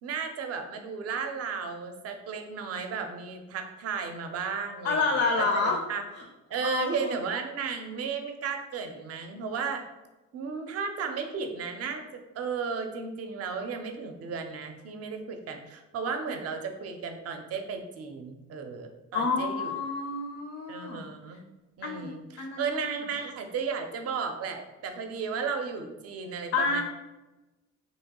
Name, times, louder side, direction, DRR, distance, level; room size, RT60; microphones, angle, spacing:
voice 1, 0.0-6.0 6.5-9.8 10.3-19.7 20.7-21.4 21.8-26.8, right 5 dB, 55° right, 6 dB, 0.5 m, -34 dB
voice 2, 4.8-5.8 6.1-6.2 6.6-7.2 19.1-21.0 21.3-21.4 21.8-22.8 26.5-26.8, left 4 dB, 55° left, 3 dB, 0.4 m, -29 dB
2.9 x 2.2 x 2.8 m, 1.1 s
cardioid pair, 90°, 30 cm